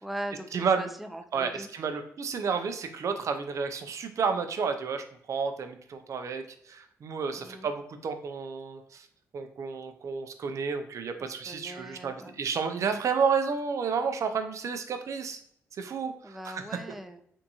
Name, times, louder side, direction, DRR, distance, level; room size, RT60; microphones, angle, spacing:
voice 1, 0.0-1.7 7.3-7.7 11.2-12.4 16.2-17.2, right 1 dB, ahead, 7 dB, 0.4 m, -40 dB
voice 2, 0.5-0.9 1.3-9.1 9.3-15.4 15.8-16.6, right 5 dB, 60° right, 8 dB, 0.5 m, -31 dB
3.5 x 2.6 x 2.8 m, 0.68 s
cardioid pair, 70°, 6 cm